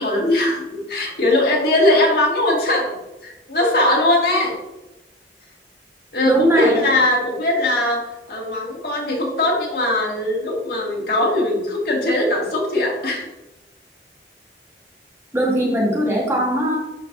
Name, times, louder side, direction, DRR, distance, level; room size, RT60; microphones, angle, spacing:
voice 1, 0.0-4.6 6.1-13.3, left 1 dB, 60° left, -2 dB, 1.9 m, -20 dB
voice 2, 6.2-6.7 15.3-16.8, equal, 15° right, -3 dB, 1.4 m, -19 dB
11.0 x 4.5 x 2.6 m, 0.97 s
head